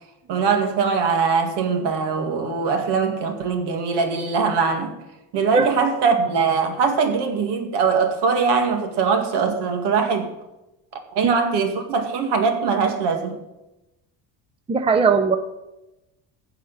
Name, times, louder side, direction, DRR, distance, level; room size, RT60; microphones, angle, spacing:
voice 1, 0.3-5.0 5.3-10.3 11.1-13.4, right 5 dB, 70° right, 5 dB, 2.2 m, -21 dB
voice 2, 14.7-15.4, right 5 dB, 15° right, 9 dB, 0.6 m, -18 dB
15.0 x 5.1 x 8.2 m, 0.96 s
cardioid pair, 140°, 42 cm